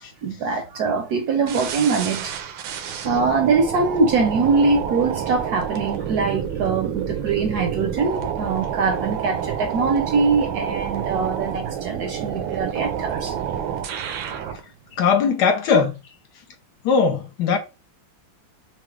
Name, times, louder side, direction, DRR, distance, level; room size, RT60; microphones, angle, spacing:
voice 1, 0.2-2.3 3.0-13.3, right 4 dB, 65° right, 1.0 m, -22 dB
sound 1, 1.5-14.6, right 8 dB, 85° right, 1.4 m, -28 dB
voice 2, 14.9-15.9 16.8-17.6, left 5 dB, 70° left, 1.1 m, -19 dB
6.0 x 2.1 x 3.1 m
omnidirectional pair, 2.1 m